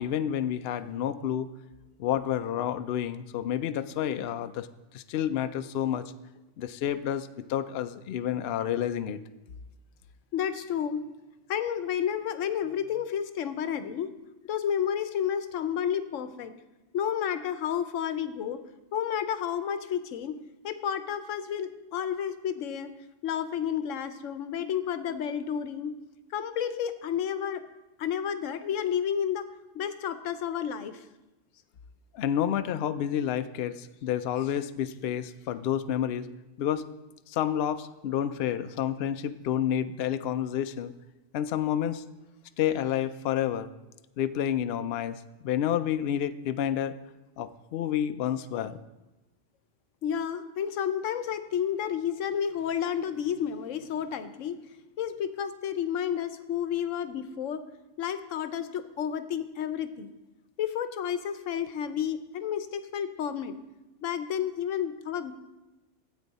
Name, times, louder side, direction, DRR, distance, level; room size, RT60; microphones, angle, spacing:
voice 1, 0.0-1.5 2.0-4.7 4.9-6.0 6.6-9.2 32.1-36.2 36.6-36.8 37.3-40.9 41.3-42.0 42.6-43.7 44.2-47.0 47.4-48.8, left 10 dB, 65° left, 10 dB, 0.7 m, -29 dB
voice 2, 10.3-11.0 11.5-14.1 14.4-16.5 16.9-18.6 18.9-20.4 20.6-22.9 23.2-25.9 26.3-27.6 28.0-29.5 29.7-31.0 50.0-54.6 55.0-57.6 58.0-60.1 60.6-63.6 64.0-65.3, left 8 dB, 90° left, 11 dB, 1.1 m, -31 dB
13.0 x 8.4 x 4.1 m, 1.0 s
omnidirectional pair, 1.3 m